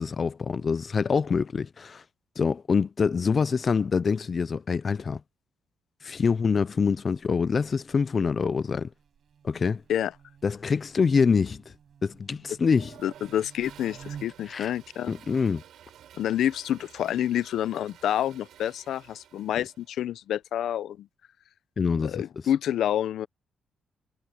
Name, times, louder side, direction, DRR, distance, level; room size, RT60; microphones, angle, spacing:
voice 1, 0.0-2.0 2.4-5.2 6.0-8.9 9.4-9.8 10.4-11.6 12.0-12.9 14.5-14.7 15.1-15.6 19.6-19.7 21.8-22.2, left 5 dB, 35° left, 0.4 m, -25 dB
Buzz, 6.9-14.6, right 8 dB, 55° right, 5.2 m, -51 dB
Toilet flush, 12.7-20.0, right 10 dB, 85° right, 3.5 m, -52 dB
voice 2, 13.0-15.1 16.2-21.1 22.0-23.3, left 11 dB, 80° left, 0.7 m, -28 dB
cardioid pair, 125°, 0 cm